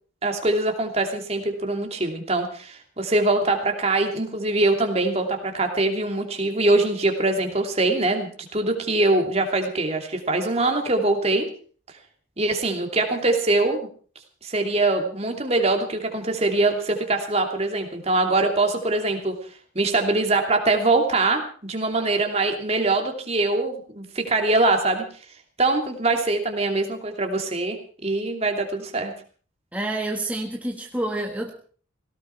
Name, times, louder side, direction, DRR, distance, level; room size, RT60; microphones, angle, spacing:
voice 1, 0.2-11.5 12.4-13.9 14.4-19.4 19.7-25.0 25.6-27.8 28.0-29.1, right 2 dB, 30° right, 4 dB, 2.8 m, -23 dB
voice 2, 29.7-31.5, right 1 dB, 5° right, 1 dB, 1.5 m, -28 dB
18.0 x 18.0 x 4.6 m, 0.43 s
head